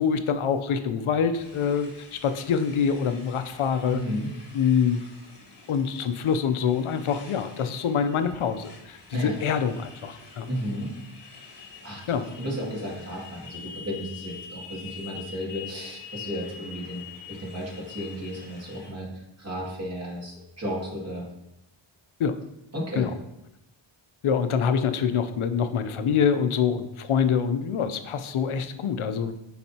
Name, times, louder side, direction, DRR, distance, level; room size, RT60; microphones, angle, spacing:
voice 1, 0.0-4.0 4.5-5.0 5.7-10.5 12.1-12.3 22.2-22.4 23.0-23.1 24.2-29.4, left 7 dB, 80° left, 10 dB, 0.6 m, -25 dB
Motorcycle, 1.3-18.9, left 6 dB, 55° left, 1.4 m, -46 dB
voice 2, 3.9-4.3 9.1-9.4 10.5-10.9 11.8-17.0 17.3-19.1 19.4-21.3 22.7-23.1, equal, 30° right, -4 dB, 2.1 m, -33 dB
9.8 x 4.1 x 2.8 m, 0.87 s
wide cardioid pair, 120°, 48 cm